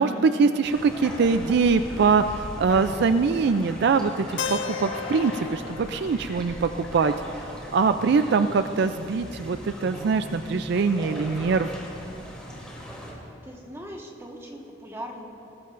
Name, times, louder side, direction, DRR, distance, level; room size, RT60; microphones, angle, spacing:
voice 1, 0.0-7.1 7.7-11.7, right 4 dB, 60° right, 9 dB, 0.4 m, -23 dB
sound 1, 0.6-13.1, equal, 5° left, 2.9 m, -39 dB
Keyboard (musical), 4.4-8.3, left 8 dB, 70° left, 0.5 m, -37 dB
voice 2, 13.4-15.2, equal, 15° right, 0 dB, 1.5 m, -39 dB
20.0 x 18.0 x 2.6 m, 2.8 s
head